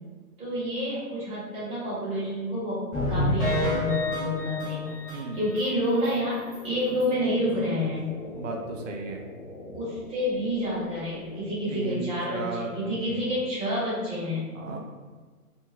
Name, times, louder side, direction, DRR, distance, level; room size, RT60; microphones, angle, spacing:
voice 1, 0.4-2.8 3.1-6.4 6.6-8.2 9.7-14.5, equal, 15° right, -10 dB, 0.9 m, -29 dB
sound 1, 2.9-5.6 6.0-6.1 6.5-6.6 7.0-7.1, left 1 dB, 15° left, 0.4 m, -28 dB
sound 2, 5.0-12.4, left 2 dB, 40° left, 0.9 m, -45 dB
voice 2, 8.3-9.2 11.7-13.3 14.5-14.8, right 3 dB, 55° right, 1 dB, 0.6 m, -35 dB
2.6 x 2.3 x 2.9 m, 1.4 s
hypercardioid pair, 135°, 45 cm